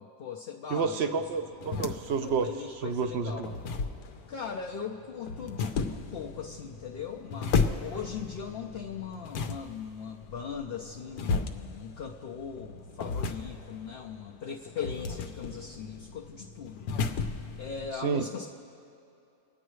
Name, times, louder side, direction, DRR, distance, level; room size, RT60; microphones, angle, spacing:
voice 1, 0.0-1.2 2.2-3.5 4.3-16.9 17.6-18.5, left 7 dB, 55° left, 0 dB, 0.7 m, -39 dB
voice 2, 0.7-2.5 2.8-3.5 18.0-18.2, right 5 dB, 60° right, 8 dB, 0.8 m, -29 dB
sound 1, 1.2-17.9, left 5 dB, 85° left, 1.2 m, -35 dB
26.5 x 9.0 x 3.2 m, 2.7 s
omnidirectional pair, 1.6 m